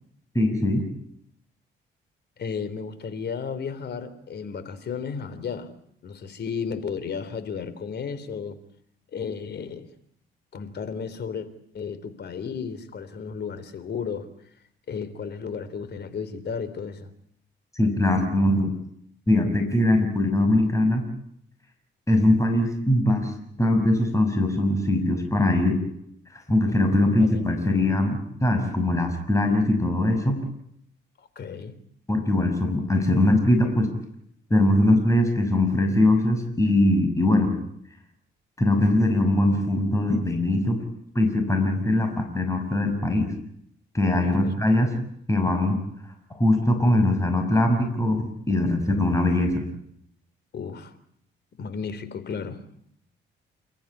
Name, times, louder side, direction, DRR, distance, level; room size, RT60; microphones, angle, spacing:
voice 1, 0.3-0.8 17.7-18.7 19.3-21.1 22.1-23.3 23.6-25.8 26.5-30.4 32.1-33.9 34.5-37.5 38.6-40.8 41.1-43.3 43.9-44.9 45.3-45.8 46.4-49.6, left 1 dB, 15° left, 4 dB, 6.1 m, -21 dB
voice 2, 2.4-5.7 6.0-8.6 9.1-9.9 10.5-11.5 11.7-14.3 14.9-17.1 27.2-27.4 31.2-31.8 44.2-44.5 50.5-50.9 51.6-52.6, left 6 dB, 55° left, 13 dB, 3.5 m, -33 dB
29.5 x 14.5 x 9.9 m, 0.71 s
cardioid pair, 90°, 20 cm